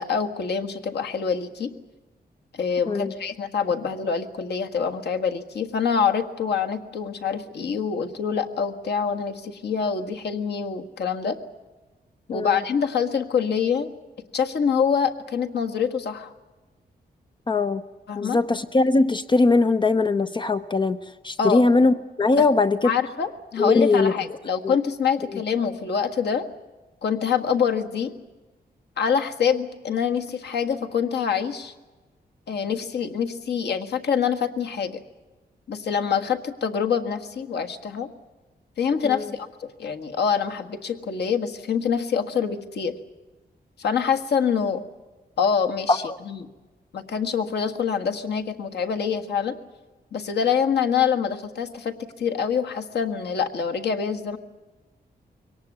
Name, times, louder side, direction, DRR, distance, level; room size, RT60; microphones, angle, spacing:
voice 1, 0.0-1.7 2.5-11.4 12.3-13.9 14.3-16.3 18.1-18.4 21.4-21.6 22.8-26.5 27.0-28.1 29.0-31.7 32.5-34.9 35.7-38.1 38.8-42.9 43.8-44.8 45.4-46.4 46.9-49.5 50.1-54.4, left 6 dB, 80° left, 5 dB, 1.7 m, -25 dB
voice 2, 17.5-17.8 18.1-22.9 23.6-24.4 24.6-24.8 25.3-25.4 39.0-39.3 45.9-46.2, left 3 dB, 30° left, 12 dB, 0.7 m, -21 dB
23.0 x 18.5 x 9.5 m, 1.2 s
wide cardioid pair, 165°, 17 cm